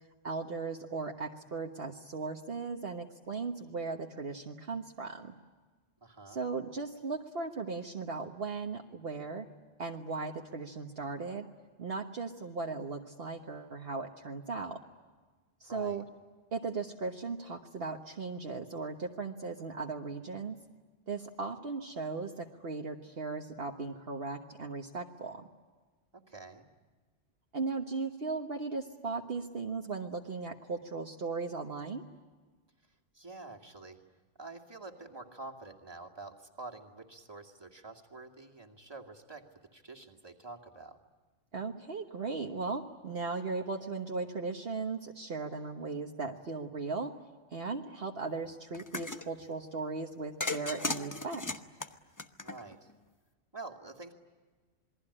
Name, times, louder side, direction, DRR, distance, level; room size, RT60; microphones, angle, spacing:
voice 1, 0.2-5.3 6.3-9.4 9.8-11.4 11.8-14.8 15.6-16.0 16.5-20.6 21.1-25.5 27.5-32.0 41.5-47.1 47.5-51.4, right 4 dB, 55° right, 3 dB, 1.5 m, -37 dB
voice 2, 6.0-6.4 15.6-16.0 26.1-26.7 33.1-34.0 34.4-41.0 52.4-52.9 53.5-54.1, right 3 dB, 20° right, 1 dB, 2.4 m, -47 dB
sound 1, 48.7-49.3 50.4-52.9, left 2 dB, 15° left, 1.0 m, -36 dB
28.0 x 21.5 x 9.9 m, 1.4 s
omnidirectional pair, 1.2 m